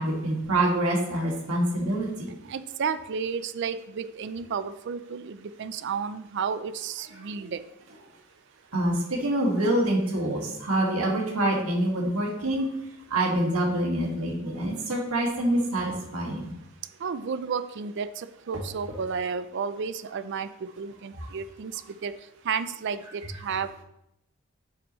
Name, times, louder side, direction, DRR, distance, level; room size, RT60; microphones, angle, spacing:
voice 1, 0.0-2.3 7.4-7.5 8.7-12.7 13.1-16.5, right 1 dB, 85° right, -1 dB, 2.0 m, -26 dB
voice 2, 2.5-7.6 17.0-22.1 22.4-23.8, right 6 dB, 55° right, 14 dB, 0.4 m, -32 dB
8.6 x 6.1 x 3.1 m, 0.84 s
head